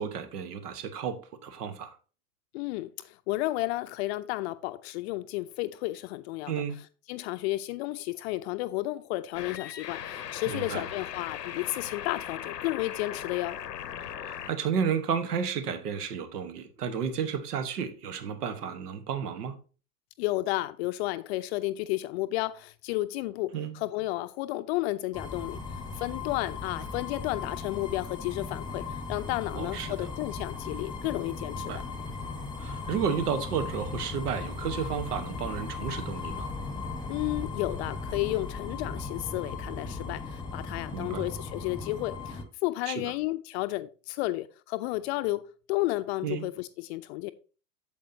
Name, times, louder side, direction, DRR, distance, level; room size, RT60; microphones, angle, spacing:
voice 1, 0.0-2.0 6.5-6.8 10.5-10.8 14.0-19.6 23.5-23.7 29.5-30.1 31.6-31.8 32.6-36.5 40.9-41.3 42.9-43.1 46.2-46.4, right 7 dB, 70° right, 1.3 m, -32 dB
voice 2, 2.5-6.5 7.1-13.6 20.2-25.6 25.9-31.7 37.1-47.3, left 18 dB, 45° left, 0.6 m, -32 dB
sound 1, 9.3-14.5, left 10 dB, 80° left, 0.8 m, -38 dB
sound 2, 25.1-42.4, left 4 dB, 10° left, 1.1 m, -37 dB
8.4 x 7.3 x 2.7 m
figure-of-eight pair, 90°, 48 cm